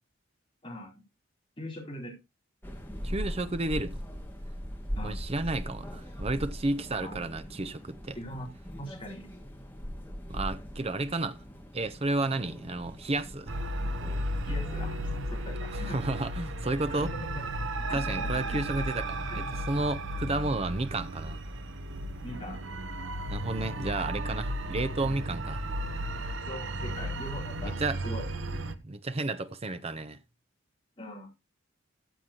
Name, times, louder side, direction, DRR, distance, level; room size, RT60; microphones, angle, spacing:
voice 1, 0.6-1.0 1.6-2.2 5.0-5.2 7.0-7.2 8.1-8.5 8.8-9.3 14.4-16.0 16.9-18.6 19.2-19.4 20.1-20.2 22.2-22.6 26.4-27.7 28.0-28.2 31.0-31.3, equal, 25° left, 4.0 m, -41 dB
sound 1, 2.6-15.5, equal, 10° left, 2.1 m, -40 dB
voice 2, 3.0-4.0 5.0-8.2 10.3-11.4 11.7-13.6 15.7-17.1 17.9-21.4 23.3-25.6 27.6-28.0 28.8-30.2, right 2 dB, 30° right, 0.6 m, -32 dB
sound 2, 13.5-28.7, right 1 dB, 65° right, 1.0 m, -34 dB
14.5 x 8.0 x 2.9 m
head